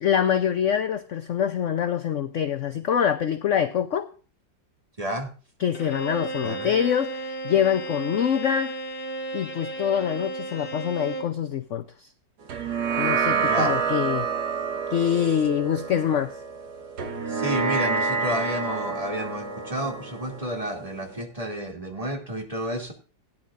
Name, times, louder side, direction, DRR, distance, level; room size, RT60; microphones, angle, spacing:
voice 1, 0.0-4.1 5.6-8.7 9.3-12.1 13.0-14.3 14.9-16.3, left 9 dB, 60° left, 10 dB, 0.8 m, -25 dB
voice 2, 5.0-5.3 6.4-6.7 13.3-13.8 17.3-22.9, right 1 dB, 20° right, 2 dB, 2.5 m, -30 dB
Bowed string instrument, 5.7-11.4, right 2 dB, 80° left, 3.1 m, -34 dB
sound 1, 12.5-21.2, right 5 dB, 60° right, 1.9 m, -28 dB
17.5 x 10.0 x 2.5 m, 0.38 s
omnidirectional pair, 2.0 m